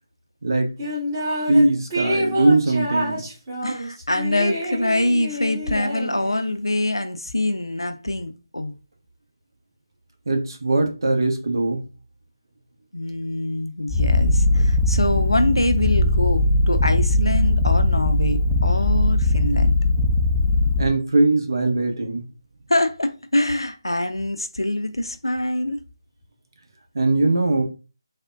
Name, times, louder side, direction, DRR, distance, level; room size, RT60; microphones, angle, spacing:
voice 1, 0.4-0.7 1.5-3.2 10.3-11.8 20.8-22.3 26.9-27.6, right 2 dB, 60° right, 0.7 m, -20 dB
sound 1, 0.8-1.6 1.9-6.6, equal, 25° right, 1.3 m, -28 dB
voice 2, 3.6-8.7 12.9-19.8 22.7-25.8, left 1 dB, 85° left, 0.4 m, -24 dB
Purr, 13.9-20.9, left 2 dB, 15° left, 0.3 m, -19 dB
3.3 x 2.1 x 2.4 m
figure-of-eight pair, 155°, 2 cm